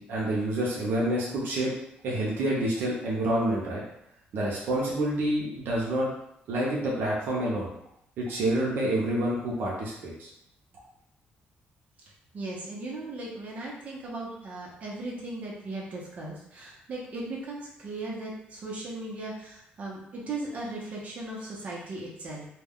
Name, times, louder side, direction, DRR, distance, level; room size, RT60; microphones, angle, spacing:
voice 1, 0.0-1.7 2.0-3.8 4.3-6.1 6.5-7.7 8.2-10.3, right 1 dB, 70° right, -4 dB, 0.6 m, -28 dB
voice 2, 12.3-22.4, right 2 dB, 40° right, -4 dB, 0.8 m, -37 dB
2.3 x 2.2 x 3.5 m, 0.77 s
cardioid pair, 145°, 4 cm